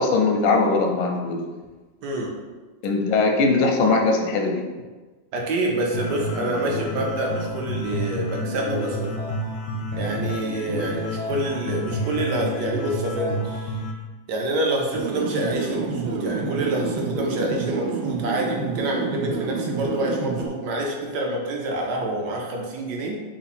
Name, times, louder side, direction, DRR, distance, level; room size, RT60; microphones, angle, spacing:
voice 1, 0.0-1.4 2.8-4.6, left 3 dB, 90° left, 2 dB, 1.4 m, -20 dB
voice 2, 2.0-2.4 5.3-9.2 10.0-13.8 14.3-23.2, right 1 dB, 70° right, -1 dB, 1.2 m, -27 dB
sound 1, 5.9-13.9, left 1 dB, 65° left, 0.7 m, -29 dB
sound 2, 14.9-20.5, right 4 dB, 90° right, 1.4 m, -28 dB
3.8 x 3.0 x 4.1 m, 1.3 s
omnidirectional pair, 2.0 m